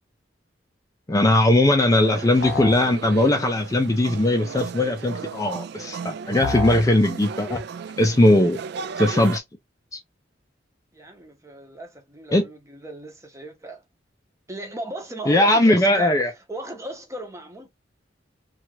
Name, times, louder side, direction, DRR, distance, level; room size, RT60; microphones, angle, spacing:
voice 1, 1.1-7.6 8.0-8.6 9.0-9.4 9.9-10.0 12.3-12.5 15.3-16.3, left 1 dB, 20° left, 0.4 m, -19 dB
sound 1, 1.9-9.4, right 6 dB, 60° right, 0.3 m, -35 dB
sound 2, 2.4-2.9 6.4-6.9, left 3 dB, 65° left, 0.7 m, -28 dB
voice 2, 10.9-13.8 14.5-17.7, right 2 dB, 15° right, 0.7 m, -37 dB
2.8 x 2.4 x 2.9 m
head